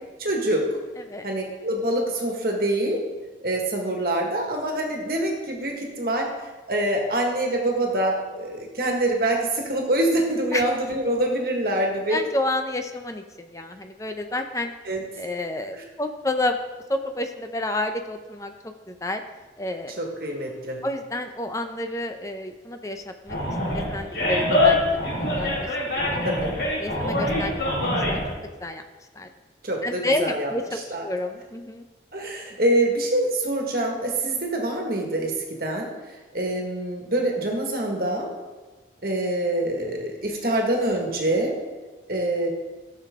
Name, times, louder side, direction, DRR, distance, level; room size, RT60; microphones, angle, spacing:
voice 1, 0.2-0.7 1.2-3.0 3.4-6.3 6.7-12.2 14.9-15.0 20.0-20.8 26.2-26.5 29.6-30.5 30.9-31.1 32.1-35.9 36.3-38.3 39.0-41.5 42.1-42.5, right 1 dB, 55° right, 1 dB, 1.6 m, -25 dB
voice 2, 1.0-1.3 10.5-10.6 12.1-14.7 15.1-16.6 16.9-19.2 19.6-19.9 20.8-24.8 25.2-25.7 26.0-26.3 26.8-28.2 28.6-28.8 29.1-29.3 29.8-31.8, left 1 dB, 20° left, 6 dB, 0.6 m, -30 dB
Animal, 23.3-28.3, left 1 dB, 70° left, 3.5 m, -24 dB
13.5 x 6.7 x 3.6 m, 1.3 s
head